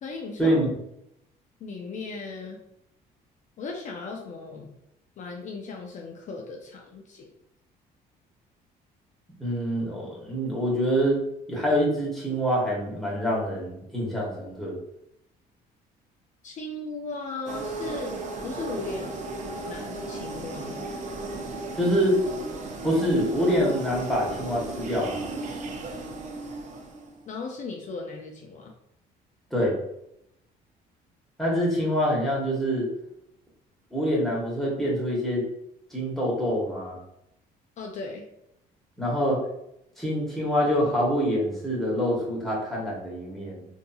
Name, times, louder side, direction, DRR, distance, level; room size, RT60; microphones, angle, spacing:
voice 1, 0.0-0.6 1.6-2.6 3.6-4.7 5.2-7.3 16.4-18.2 18.4-19.1 19.7-21.0 27.3-28.7 37.8-38.2, left 3 dB, 45° left, 1 dB, 0.4 m, -37 dB
voice 2, 9.4-11.2 11.5-14.8 21.8-22.2 22.8-25.3 29.5-29.7 31.4-32.9 33.9-35.4 35.9-36.9 39.0-39.4 40.0-43.6, equal, ahead, -5 dB, 1.1 m, -25 dB
sound 1, 17.5-27.2, right 2 dB, 45° right, 0.5 m, -35 dB
2.7 x 2.6 x 2.3 m, 0.79 s
cardioid pair, 110°, 17 cm